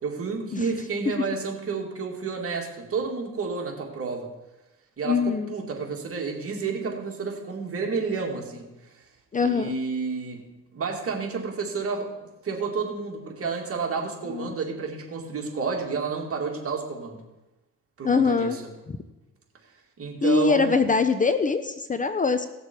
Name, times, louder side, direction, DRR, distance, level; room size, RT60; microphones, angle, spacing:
voice 1, 0.0-4.3 5.0-9.1 9.4-10.4 10.7-12.1 12.4-17.2 18.0-18.6 20.0-20.8, right 4 dB, 50° right, 1 dB, 2.4 m, -30 dB
voice 2, 5.0-5.5 9.3-9.7 14.3-14.6 18.0-18.6 18.9-19.0 20.2-22.5, left 5 dB, 25° left, 11 dB, 0.6 m, -23 dB
17.5 x 6.7 x 4.5 m, 1.0 s
cardioid pair, 90°, 30 cm